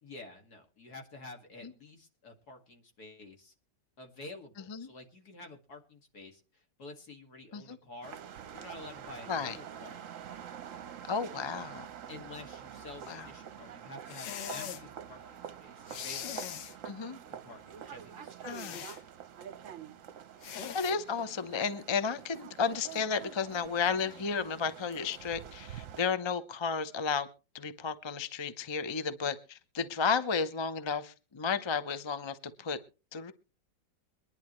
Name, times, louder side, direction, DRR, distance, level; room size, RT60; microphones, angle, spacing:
voice 1, 0.0-3.5 4.0-8.2 8.5-10.1 12.1-16.5 17.3-18.9, left 2 dB, 60° left, 2.7 m, -49 dB
sound 1, 8.0-26.0, right 9 dB, 55° right, 1.0 m, -47 dB
voice 2, 11.1-11.9 13.1-13.3 16.8-17.2 18.4-18.8 20.7-27.3 27.5-32.8 33.1-33.3, left 5 dB, 35° left, 0.4 m, -33 dB
sound 2, 14.1-14.8 15.9-16.8 18.5-19.0 20.4-21.0, left 9 dB, 90° left, 1.6 m, -41 dB
23.0 x 11.0 x 3.1 m
omnidirectional pair, 1.9 m